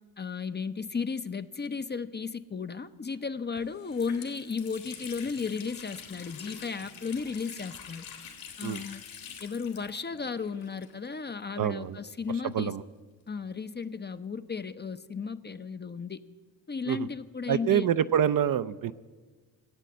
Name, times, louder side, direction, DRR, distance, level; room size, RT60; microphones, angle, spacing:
voice 1, 0.2-8.1 8.6-9.0 9.4-12.7 13.3-16.2 16.7-17.9, left 5 dB, 20° left, 11 dB, 0.6 m, -34 dB
Water tap faucet, 3.1-3.2 3.6-11.3 11.5-11.6 12.5-14.0, left 7 dB, 70° left, 2.4 m, -46 dB
voice 2, 11.6-12.0 12.3-12.8 16.9-17.1 17.5-18.9, right 9 dB, 45° right, 13 dB, 0.5 m, -27 dB
14.5 x 8.2 x 7.9 m, 1.4 s
hypercardioid pair, 45°, 48 cm